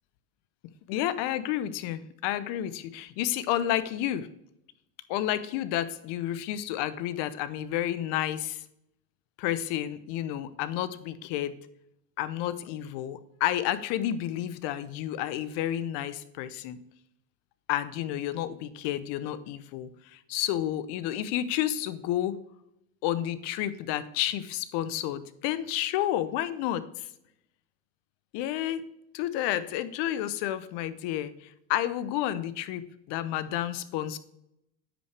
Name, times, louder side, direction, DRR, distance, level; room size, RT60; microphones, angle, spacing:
voice 1, 0.9-4.3 5.1-8.6 9.4-11.6 12.2-16.8 17.7-22.4 23.0-27.1 28.3-28.8 29.1-34.2, left 12 dB, 60° left, 14 dB, 0.9 m, -30 dB
9.7 x 5.7 x 3.3 m, 0.80 s
supercardioid pair, 100°, 47 cm